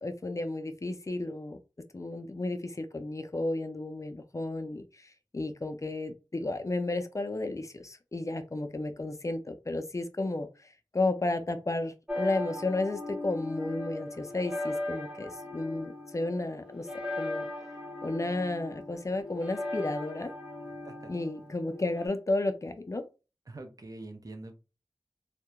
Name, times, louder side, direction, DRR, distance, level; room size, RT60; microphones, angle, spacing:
voice 1, 0.0-1.6 1.9-10.5 10.9-16.9 17.2-17.5 18.0-20.3 21.1-23.0, left 2 dB, 40° left, 0.3 m, -33 dB
sound 1, 12.1-22.1, left 2 dB, 10° right, 0.7 m, -38 dB
voice 2, 23.5-24.5, right 2 dB, 45° right, 0.5 m, -44 dB
2.3 x 2.1 x 2.8 m
wide cardioid pair, 55°, 8 cm